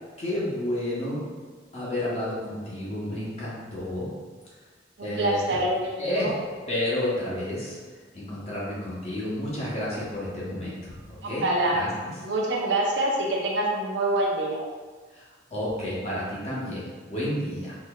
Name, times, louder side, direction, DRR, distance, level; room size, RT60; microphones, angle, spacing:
voice 1, 0.2-1.2 1.7-4.1 5.0-5.6 6.0-6.4 6.7-7.8 8.1-11.5 11.7-12.1 15.1-17.8, left 1 dB, 35° left, -8 dB, 1.1 m, -31 dB
voice 2, 5.0-6.3 11.2-11.8 12.2-14.6, right 1 dB, 70° right, -2 dB, 0.7 m, -26 dB
4.3 x 3.2 x 2.4 m, 1.4 s
head